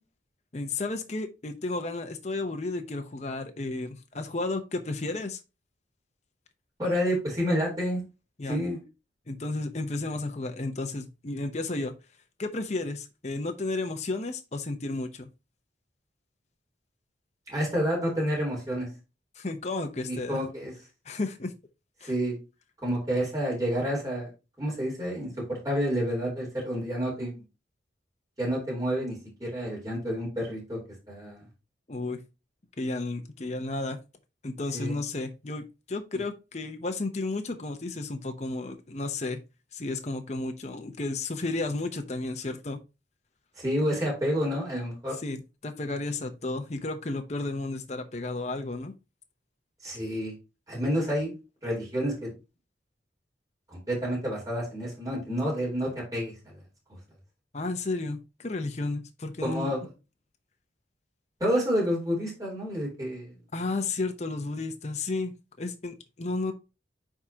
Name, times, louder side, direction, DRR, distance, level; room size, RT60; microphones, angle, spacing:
voice 1, 0.5-5.4 8.4-8.6 9.3-11.9 12.4-15.3 19.4-20.4 21.0-21.5 22.0-22.1 31.9-32.2 32.8-34.0 34.4-39.4 39.7-42.8 45.2-48.9 57.5-59.7 63.5-65.3 65.6-66.5, left 2 dB, 35° left, 0.7 m, -32 dB
voice 2, 6.8-8.0 8.5-8.8 17.5-18.9 20.0-20.7 22.0-22.3 22.8-24.3 24.6-27.4 28.4-30.8 31.1-31.4 34.7-35.0 43.6-45.2 49.8-50.3 50.7-51.3 51.6-52.3 53.7-56.5 59.4-59.9 61.4-63.3, equal, 20° right, 3.5 m, -29 dB
9.5 x 3.7 x 2.8 m
head